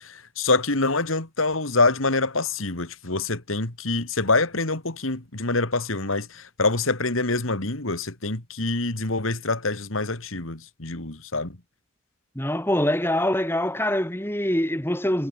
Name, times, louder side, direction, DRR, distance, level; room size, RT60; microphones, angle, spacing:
voice 1, 0.4-6.3 6.6-11.5, left 3 dB, 75° left, 2.9 m, -25 dB
voice 2, 12.4-15.3, left 1 dB, 10° left, 3.6 m, -24 dB
head